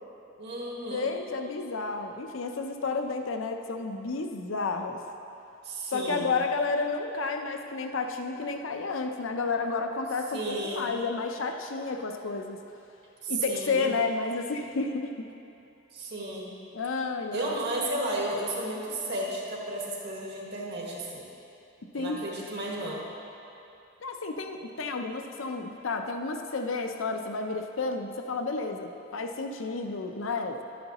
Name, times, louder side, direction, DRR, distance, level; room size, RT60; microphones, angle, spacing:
voice 1, 0.4-1.1 5.6-6.4 10.3-11.0 13.2-13.9 15.9-16.5 17.3-21.2 21.9-23.0, right 1 dB, 60° right, -3 dB, 1.6 m, -33 dB
voice 2, 0.9-5.0 5.9-12.6 13.3-15.2 16.7-17.6 21.9-22.2 24.0-30.6, left 4 dB, 75° left, 5 dB, 0.6 m, -31 dB
11.5 x 9.3 x 3.0 m, 2.8 s
head